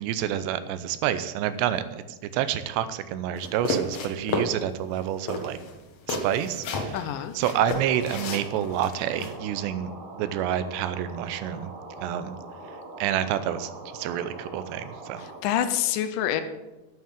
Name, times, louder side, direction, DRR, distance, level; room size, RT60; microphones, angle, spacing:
voice 1, 0.0-5.6 6.1-7.0 7.3-11.7 12.0-12.4 13.0-15.2, right 10 dB, 85° right, 12 dB, 2.9 m, -28 dB
sound 1, 3.4-4.5 4.9-5.0 5.3-7.0 7.4-9.3, left 2 dB, 65° left, 1.5 m, -31 dB
voice 2, 6.9-7.3 15.4-16.4, left 11 dB, 85° left, 10 dB, 1.9 m, -26 dB
sound 2, 7.7-15.4, right 2 dB, 60° right, 4.1 m, -42 dB
9.3 x 9.3 x 7.4 m, 1.1 s
omnidirectional pair, 4.9 m